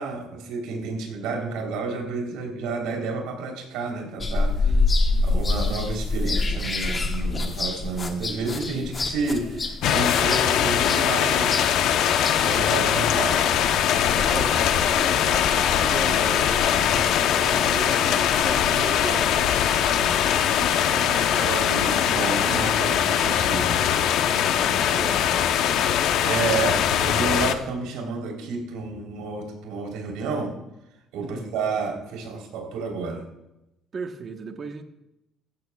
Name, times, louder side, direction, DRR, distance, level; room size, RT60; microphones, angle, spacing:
voice 1, 0.0-4.7 5.2-12.0 12.4-14.0 16.8-17.0 19.0-21.0 21.3-23.8 26.2-30.5 31.1-33.3, right 3 dB, 90° right, 1 dB, 3.6 m, -31 dB
sound 1, 4.2-12.6, left 3 dB, 20° left, 1.1 m, -26 dB
voice 2, 4.6-5.4 14.1-19.3 20.8-21.4 24.5-25.4 31.2-31.6 33.9-34.8, right 4 dB, 30° right, 6 dB, 1.2 m, -36 dB
sound 2, 9.8-27.5, left 9 dB, 70° left, 0.8 m, -21 dB
Walk footsteps, 12.0-18.4, left 1 dB, 5° left, 2.2 m, -42 dB
16.0 x 14.5 x 2.4 m, 0.90 s
cardioid pair, 150°, 0 cm